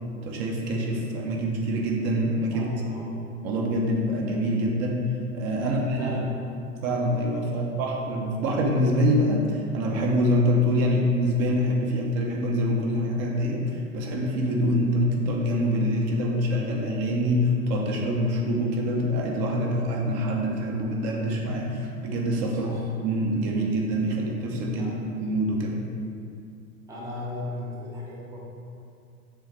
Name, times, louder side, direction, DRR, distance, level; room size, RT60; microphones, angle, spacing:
voice 1, 0.2-2.7 3.4-5.0 5.3-6.3 6.8-22.8 23.0-25.8, equal, 35° right, 0 dB, 0.9 m, -25 dB
voice 2, 2.5-3.2 5.6-6.3 7.5-7.8 22.6-22.8 24.8-25.2 26.9-28.4, left 1 dB, 5° right, -5 dB, 0.7 m, -36 dB
7.0 x 3.2 x 4.8 m, 2.4 s
hypercardioid pair, 105°, 44 cm